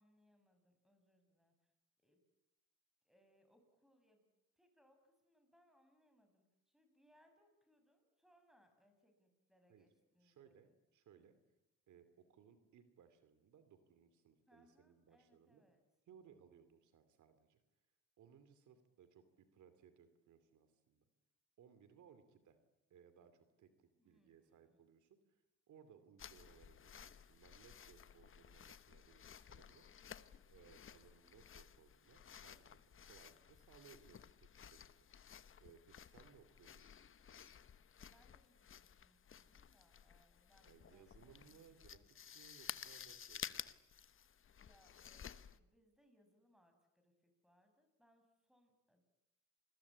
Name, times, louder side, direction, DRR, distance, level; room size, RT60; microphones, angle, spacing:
voice 1, 0.0-1.7 2.0-2.2 3.0-4.3 4.6-10.8 14.5-15.8 24.0-24.8 38.0-41.6 41.9-42.0 44.6-49.0, equal, ahead, 6 dB, 6.9 m, -74 dB
voice 2, 10.2-11.4 11.9-15.6 16.1-17.6 18.2-21.0 21.6-22.6 22.9-25.4 25.7-30.1 30.5-35.1 35.6-36.9 40.7-43.4, right 7 dB, 75° right, 11 dB, 2.8 m, -65 dB
sound 1, 26.2-45.6, left 8 dB, 45° left, 1.1 m, -54 dB
28.0 x 21.5 x 8.7 m, 0.93 s
cardioid pair, 90°, 30 cm